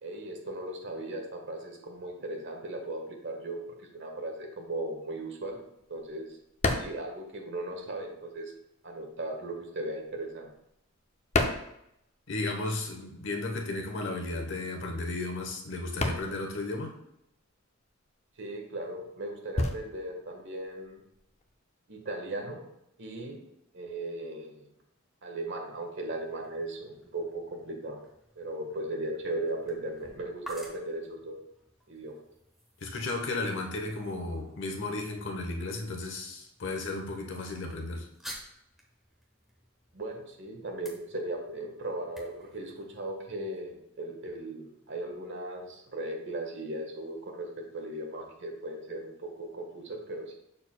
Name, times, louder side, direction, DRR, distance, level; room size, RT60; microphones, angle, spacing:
voice 1, 0.0-5.6 5.9-6.3 6.7-8.5 8.8-10.5 18.4-21.0 21.9-22.6 23.0-23.4 23.7-24.7 25.2-28.0 28.3-31.4 31.9-32.2 39.9-50.3, right 1 dB, 60° right, 2 dB, 1.3 m, -37 dB
sound 1, 4.8-8.1 8.4-12.5 12.8-21.6, left 2 dB, 30° left, 0.5 m, -35 dB
voice 2, 12.3-16.9 32.8-38.1, left 2 dB, 60° left, 3 dB, 0.9 m, -34 dB
sound 2, 25.8-43.6, right 1 dB, ahead, 1.1 m, -53 dB
6.6 x 6.5 x 2.2 m, 0.80 s
head